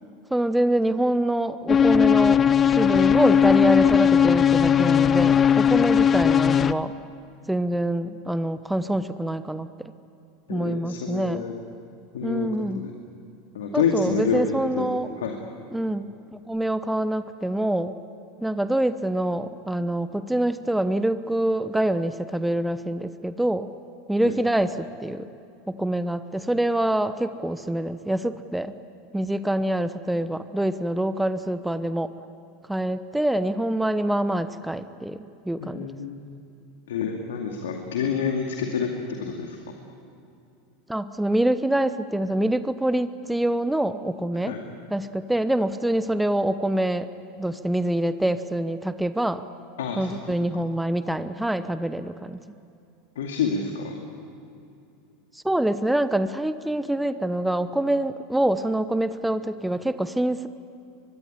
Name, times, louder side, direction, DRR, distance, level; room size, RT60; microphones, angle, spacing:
voice 1, 0.3-6.9 7.5-9.7 10.5-11.4 12.2-12.9 13.7-15.1 15.7-17.9 18.4-23.7 24.1-25.3 25.7-28.8 29.1-32.1 32.7-35.9 40.9-44.6 44.9-47.1 47.4-49.5 50.0-52.4 55.3-60.5, right 1 dB, 5° right, 12 dB, 1.0 m, -25 dB
sound 1, 1.7-6.7, left 8 dB, 30° left, 0.8 m, -18 dB
voice 2, 10.5-11.5 12.1-12.9 13.5-14.9 15.2-15.4 24.2-24.4 35.6-36.2 36.9-39.6 44.5-44.6 49.8-50.1 53.2-54.0, left 6 dB, 75° left, 2 dB, 2.3 m, -28 dB
24.0 x 22.0 x 10.0 m, 2.7 s
hypercardioid pair, 85°, 0 cm